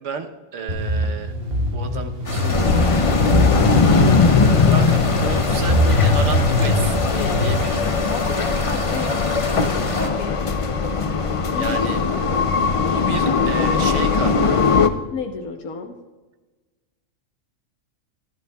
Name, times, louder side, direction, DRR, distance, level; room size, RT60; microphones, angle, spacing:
voice 1, 0.0-1.3 1.7-4.3 4.7-7.0 7.4-7.8 11.5-12.0 12.9-14.6, right 5 dB, 65° right, 5 dB, 1.2 m, -32 dB
sound 1, 0.7-7.5, left 1 dB, 45° right, 1.6 m, -21 dB
sound 2, 2.2-10.1, left 2 dB, 25° left, 1.3 m, -28 dB
sound 3, 2.5-14.9, left 5 dB, 60° left, 0.3 m, -20 dB
voice 2, 7.1-10.4 11.5-11.8 15.1-15.9, left 5 dB, 85° left, 3 dB, 1.5 m, -32 dB
26.0 x 12.0 x 2.3 m, 1.2 s
omnidirectional pair, 1.4 m